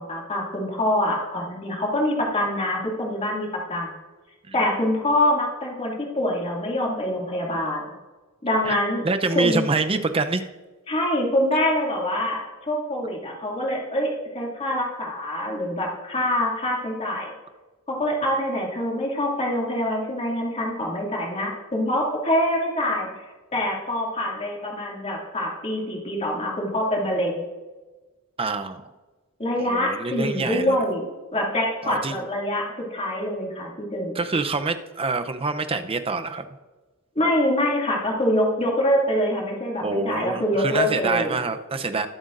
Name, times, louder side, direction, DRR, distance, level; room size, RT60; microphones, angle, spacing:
voice 1, 0.0-3.9 4.5-7.8 8.4-9.0 9.3-9.6 10.9-17.3 17.9-23.1 23.5-27.4 29.4-34.2 37.1-41.3, left 1 dB, 30° left, -2 dB, 2.4 m, -25 dB
voice 2, 8.6-10.4 28.4-28.9 29.6-30.8 31.8-32.2 34.1-36.5 39.8-42.1, right 3 dB, 25° right, 9 dB, 0.6 m, -26 dB
20.5 x 8.0 x 2.6 m, 1.3 s
head